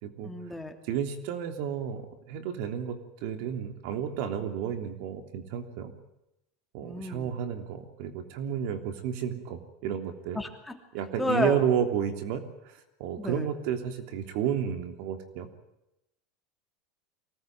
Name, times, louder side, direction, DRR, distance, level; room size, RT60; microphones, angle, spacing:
voice 1, 0.2-0.8 6.8-7.3 10.3-10.8 11.2-11.6 13.2-13.5, left 2 dB, 5° left, 5 dB, 2.9 m, -31 dB
voice 2, 0.9-5.9 6.7-10.4 10.9-15.5, right 9 dB, 65° right, 8 dB, 3.2 m, -32 dB
24.0 x 18.5 x 9.3 m, 0.88 s
supercardioid pair, 125°, 0 cm